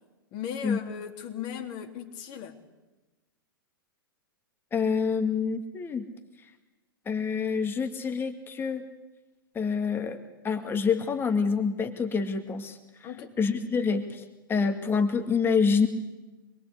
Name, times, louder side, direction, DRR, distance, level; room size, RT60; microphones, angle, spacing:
voice 1, 0.3-2.6 13.0-13.3, left 8 dB, 40° left, 5 dB, 3.5 m, -37 dB
voice 2, 4.7-6.0 7.1-8.8 9.5-10.2 10.4-12.8 13.4-15.9, left 5 dB, 20° left, 7 dB, 2.2 m, -27 dB
26.5 x 22.0 x 8.4 m, 1.1 s
figure-of-eight pair, 105°, 12 cm